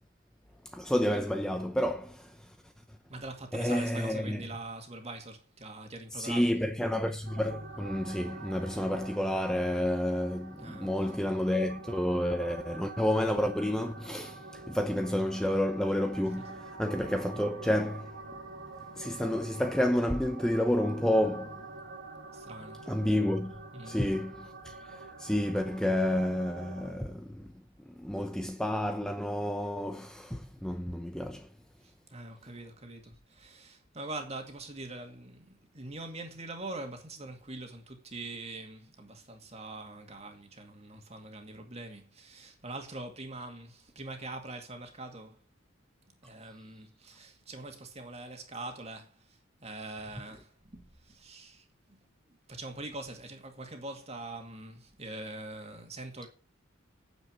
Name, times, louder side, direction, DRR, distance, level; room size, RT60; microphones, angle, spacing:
voice 1, 0.6-2.6 3.5-4.4 6.1-18.2 19.0-21.6 22.9-27.5 27.9-31.5, left 1 dB, 5° left, 0.7 m, -30 dB
voice 2, 3.1-6.5 10.6-10.9 22.3-22.9 23.7-24.0 31.8-45.4 46.2-52.0 52.3-56.3, right 2 dB, 30° right, 2.2 m, -43 dB
sound 1, 7.3-26.9, right 3 dB, 65° right, 2.3 m, -46 dB
9.2 x 7.7 x 6.3 m
head